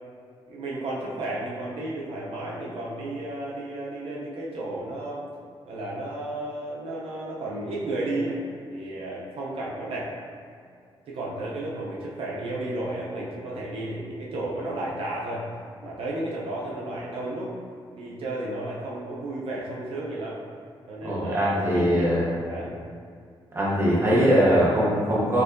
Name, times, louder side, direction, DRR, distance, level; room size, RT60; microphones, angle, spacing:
voice 1, 0.5-5.2 5.7-8.4 8.7-10.1 11.1-15.4 15.8-17.5 18.0-20.4 20.9-22.1 22.5-22.7, right 2 dB, 80° right, -5 dB, 0.6 m, -33 dB
voice 2, 21.0-22.3 23.5-25.4, equal, 25° right, -7 dB, 1.0 m, -21 dB
4.4 x 2.5 x 2.6 m, 2.3 s
wide cardioid pair, 135°, 10 cm